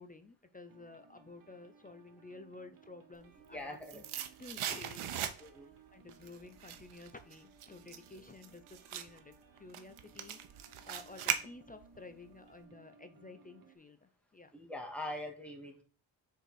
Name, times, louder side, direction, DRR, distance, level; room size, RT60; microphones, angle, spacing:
voice 1, 0.0-4.0 4.4-9.3 9.6-14.5, left 3 dB, 20° left, 8 dB, 0.4 m, -53 dB
sound 1, 0.7-13.8, right 5 dB, 45° right, 1.3 m, -62 dB
sound 2, 3.3-5.7 6.1-12.0 12.3-12.4, right 10 dB, 85° right, 0.9 m, -40 dB
voice 2, 3.5-4.0 5.4-5.7 14.5-15.8, left 1 dB, 5° left, 2 dB, 1.5 m, -43 dB
6.4 x 4.6 x 4.6 m, 0.37 s
wide cardioid pair, 150°, 48 cm